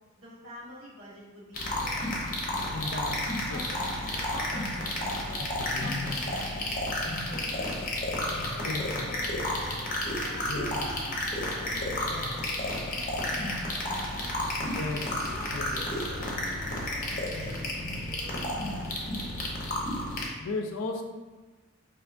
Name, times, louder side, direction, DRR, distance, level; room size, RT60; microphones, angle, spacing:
voice 1, 0.2-2.2 2.6-2.9 3.4-6.8 7.3-14.5 15.1-19.2, left 1 dB, 65° right, -6 dB, 1.3 m, -47 dB
sound 1, 1.5-20.3, left 1 dB, 40° left, 0.7 m, -32 dB
voice 2, 2.7-3.2 3.5-3.6 5.7-6.0 8.6-8.8 10.5-10.7 14.7-15.1 15.5-15.7 20.4-21.0, left 3 dB, 65° left, 3 dB, 0.4 m, -34 dB
4.5 x 2.7 x 2.5 m, 1.3 s
head